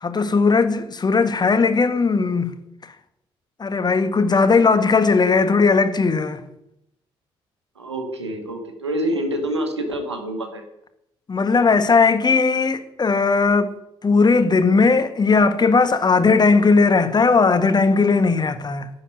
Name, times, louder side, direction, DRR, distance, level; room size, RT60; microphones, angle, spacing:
voice 1, 0.0-2.5 3.6-6.4 11.3-13.7 14.0-18.9, left 4 dB, 30° left, 1.5 m, -17 dB
voice 2, 7.8-10.6, right 1 dB, 85° right, 1.7 m, -26 dB
11.5 x 7.1 x 9.6 m
figure-of-eight pair, 45°, 14 cm